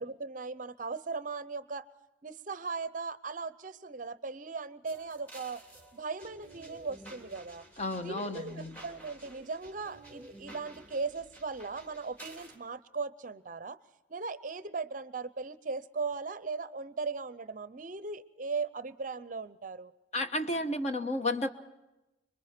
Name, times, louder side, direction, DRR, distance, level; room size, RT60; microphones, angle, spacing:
voice 1, 0.0-1.9 2.2-5.6 5.9-7.6 8.0-13.8 14.1-19.9, right 4 dB, 45° right, 14 dB, 0.6 m, -38 dB
sound 1, 4.9-12.6, right 1 dB, 10° left, 3.1 m, -52 dB
voice 2, 7.8-8.8 20.1-21.5, left 1 dB, 35° left, 7 dB, 1.2 m, -32 dB
26.0 x 23.0 x 4.4 m, 0.98 s
head